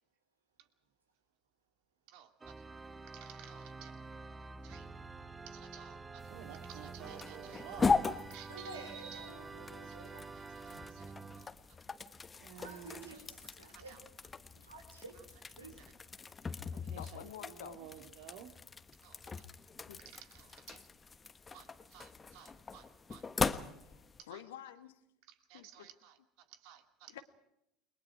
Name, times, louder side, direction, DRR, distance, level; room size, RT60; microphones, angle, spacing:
voice 1, 2.1-2.7 3.1-4.0 4.6-4.9 5.5-9.4 9.8-11.8 12.4-13.2 13.7-14.0 15.1-15.2 15.7-15.9 16.7-18.5 19.0-19.2 19.5-19.6 20.0-20.9 21.5-23.3 24.2-24.4 25.2-27.2, right 10 dB, 55° right, 7 dB, 2.4 m, -54 dB
Organ, 2.4-11.5, right 3 dB, 15° right, 1.1 m, -48 dB
sound 1, 6.2-24.2, left 4 dB, 20° left, 1.3 m, -40 dB
voice 2, 8.5-10.9 12.6-14.0 14.6-15.1 15.6-15.7 17.2-17.3 19.3-19.4, right 3 dB, 80° right, 5 dB, 4.9 m, -51 dB
voice 3, 17.0-17.8 19.9-20.0 23.8-25.0 25.5-25.9 27.1-27.2, left 12 dB, 65° left, 10 dB, 1.5 m, -49 dB
30.0 x 22.5 x 4.7 m, 0.83 s
figure-of-eight pair, 70°, 0 cm